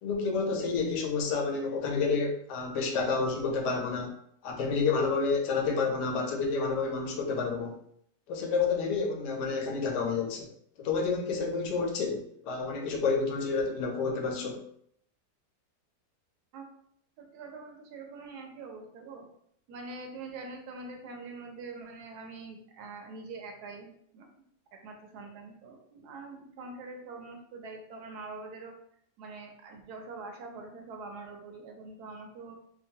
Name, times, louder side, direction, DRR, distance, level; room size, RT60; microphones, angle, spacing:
voice 1, 0.0-4.1 4.4-7.7 8.3-10.5 10.8-14.6, left 4 dB, 80° left, 1 dB, 1.2 m, -29 dB
voice 2, 17.2-19.2 19.7-24.3 24.7-28.7 29.2-32.5, right 3 dB, 75° right, 3 dB, 1.1 m, -44 dB
2.9 x 2.3 x 2.7 m, 0.67 s
omnidirectional pair, 1.8 m